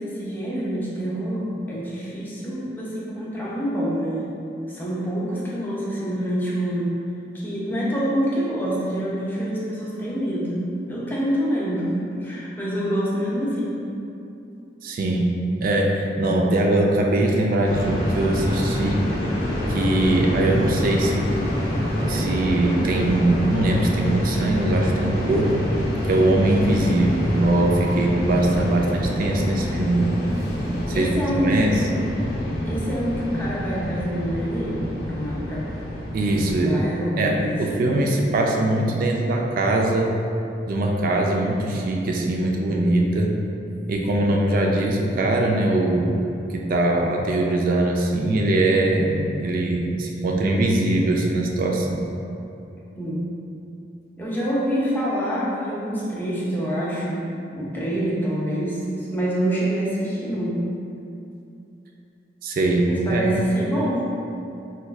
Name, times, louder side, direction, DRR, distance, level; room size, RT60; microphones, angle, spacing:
voice 1, 0.0-4.3 4.7-7.0 7.3-13.9 30.9-32.0 32.7-35.7 36.4-37.9 53.0-53.3 54.2-57.3 57.5-60.6 62.9-64.1, equal, 10° left, -7 dB, 0.5 m, -26 dB
voice 2, 14.8-15.3 15.6-19.0 19.7-21.3 22.0-25.5 26.0-30.3 30.9-31.1 31.4-31.8 36.1-36.8 37.2-40.1 40.7-43.3 43.9-52.0 62.4-63.2, right 1 dB, 50° right, 0 dB, 0.3 m, -21 dB
sound 1, 17.6-36.7, equal, 60° left, 0.6 m, -26 dB
4.2 x 2.3 x 2.3 m, 2.7 s
head